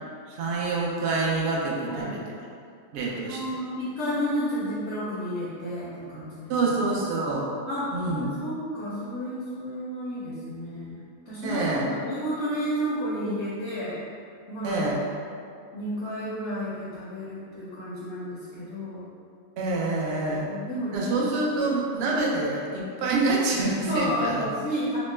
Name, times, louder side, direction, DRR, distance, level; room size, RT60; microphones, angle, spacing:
voice 1, 0.3-2.2 2.9-3.4 6.5-7.5 7.9-8.3 11.4-11.9 14.6-15.0 19.6-20.5 20.9-24.4, right 3 dB, 70° right, -3 dB, 0.7 m, -26 dB
voice 2, 1.9-2.2 3.3-6.5 7.7-7.9 8.2-14.0 14.5-14.8 15.7-19.0 20.2-20.9 21.2-21.7 23.9-25.0, equal, 65° left, -8 dB, 0.7 m, -31 dB
3.0 x 2.0 x 3.2 m, 2.3 s
omnidirectional pair, 1.6 m